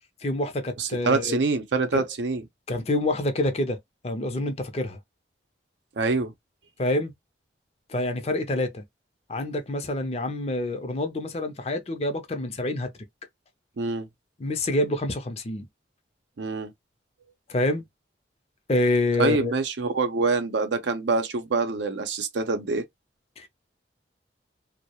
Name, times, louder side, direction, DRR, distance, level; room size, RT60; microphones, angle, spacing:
voice 1, 0.2-1.4 1.9-2.0 2.7-3.8 4.0-5.0 6.8-7.1 7.9-8.8 9.3-12.9 14.4-15.7 17.5-17.8 18.7-19.5 23.4-23.5, left 2 dB, 35° left, 0.5 m, -27 dB
voice 2, 0.8-2.4 6.0-6.3 13.8-14.1 16.4-16.7 19.2-22.8, right 4 dB, 80° right, 0.6 m, -25 dB
2.3 x 2.0 x 2.8 m
head